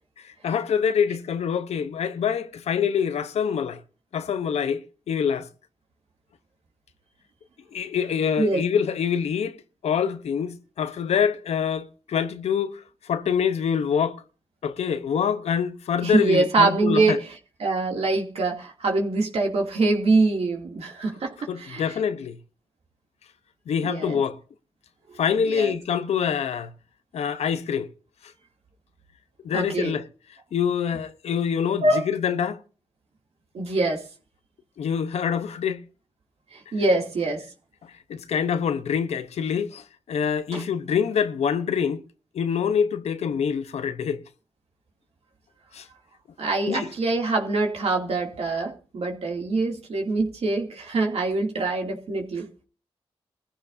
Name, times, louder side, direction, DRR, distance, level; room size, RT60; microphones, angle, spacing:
voice 1, 0.2-3.8 4.1-4.8 5.1-5.5 7.7-9.6 9.8-14.2 14.6-17.2 21.5-22.4 23.7-24.4 25.2-26.7 27.1-27.9 29.4-30.1 30.5-32.6 34.8-35.8 38.1-42.0 42.3-44.2 45.7-45.9 46.7-46.9, left 7 dB, 85° left, 0.8 m, -25 dB
voice 2, 16.0-17.2 17.6-21.9 23.8-24.2 25.1-25.2 25.5-25.7 29.5-29.9 31.8-32.1 33.5-34.0 36.5-37.4 40.5-40.6 46.4-52.5, right 3 dB, 75° right, 2.5 m, -24 dB
20.0 x 14.5 x 2.7 m
cardioid pair, 50°, 11 cm